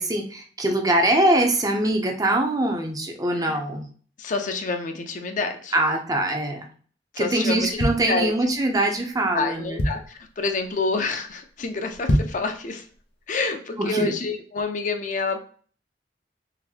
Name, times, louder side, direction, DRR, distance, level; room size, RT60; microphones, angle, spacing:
voice 1, 0.0-3.9 5.7-6.7 7.2-9.8 13.8-14.1, right 1 dB, 20° right, 3 dB, 0.5 m, -23 dB
voice 2, 4.2-5.8 7.1-7.7 8.1-8.3 9.3-12.8 13.3-15.4, left 3 dB, 45° left, 5 dB, 0.5 m, -28 dB
sound 1, 7.6-8.7 9.2-9.3 9.5-10.3 10.7-11.0 11.3-11.4 11.9-12.5 12.9-13.0, equal, 80° left, 0.7 m, -25 dB
3.9 x 2.5 x 2.7 m, 0.44 s
head